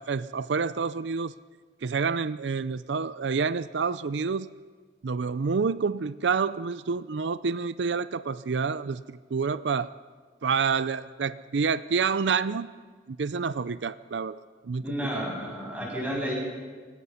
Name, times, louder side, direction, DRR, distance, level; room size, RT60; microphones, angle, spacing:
voice 1, 0.0-1.3 1.8-4.5 5.0-9.9 10.4-12.7 13.1-15.2, right 5 dB, 85° right, 15 dB, 0.5 m, -28 dB
voice 2, 14.8-16.3, equal, 10° right, -4 dB, 7.9 m, -31 dB
25.5 x 17.5 x 5.7 m, 1.5 s
head